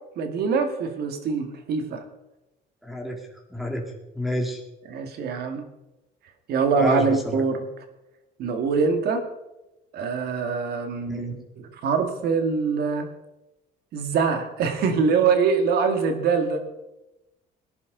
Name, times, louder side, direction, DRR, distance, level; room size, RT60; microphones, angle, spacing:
voice 1, 0.2-2.0 4.9-5.6 6.5-7.6 8.4-9.3 9.9-13.1 13.9-16.6, right 5 dB, 70° right, 6 dB, 2.1 m, -24 dB
voice 2, 2.8-3.2 3.5-3.9 4.1-4.6 6.8-7.4 11.1-11.4, equal, ahead, 0 dB, 2.3 m, -28 dB
18.0 x 11.0 x 4.0 m, 0.96 s
cardioid pair, 110°, 17 cm